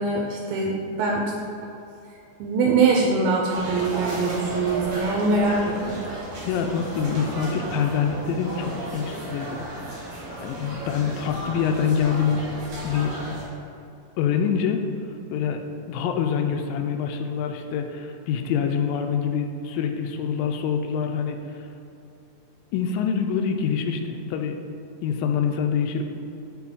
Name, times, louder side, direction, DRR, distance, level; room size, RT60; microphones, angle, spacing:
voice 1, 0.0-1.3 2.4-6.0, right 3 dB, 80° right, -2 dB, 2.3 m, -23 dB
sound 1, 3.5-13.5, right 1 dB, 65° right, 2.7 m, -34 dB
voice 2, 6.5-9.6 10.4-12.4 12.8-13.1 14.2-14.8 15.3-15.6 15.9-21.4 22.7-24.6 25.0-26.0, left 7 dB, 85° left, 5 dB, 2.2 m, -25 dB
7.1 x 3.8 x 3.6 m, 2.7 s
omnidirectional pair, 4.1 m